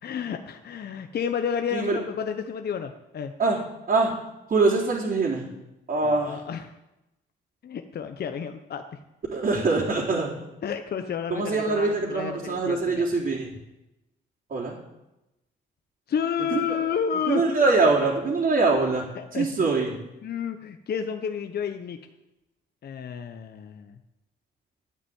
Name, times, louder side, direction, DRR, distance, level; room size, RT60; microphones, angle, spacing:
voice 1, 0.0-3.3 6.0-6.7 7.6-9.0 10.6-13.2 16.1-17.6 19.1-19.7 20.2-22.0 22.8-24.0, left 7 dB, 55° left, 7 dB, 1.1 m, -31 dB
voice 2, 4.5-5.5 5.9-6.4 9.3-10.3 11.3-13.5 14.5-14.7 16.5-16.6 17.3-19.0 19.3-19.9, right 3 dB, 45° right, -6 dB, 4.0 m, -23 dB
11.0 x 9.3 x 8.9 m, 0.94 s
cardioid pair, 90°, 20 cm